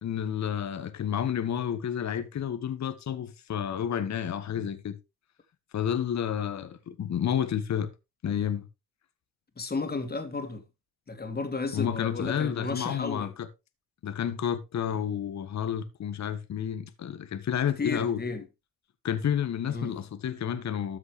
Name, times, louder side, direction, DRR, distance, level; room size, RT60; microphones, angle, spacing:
voice 1, 0.0-5.0 5.7-7.9 8.2-8.7 11.7-13.5 14.0-18.2 19.0-21.0, left 9 dB, 35° left, 1.5 m, -30 dB
voice 2, 9.6-10.6 11.1-13.3 17.8-18.4 19.7-19.9, left 3 dB, 20° left, 2.7 m, -33 dB
13.5 x 6.1 x 3.3 m
hypercardioid pair, 75°, 46 cm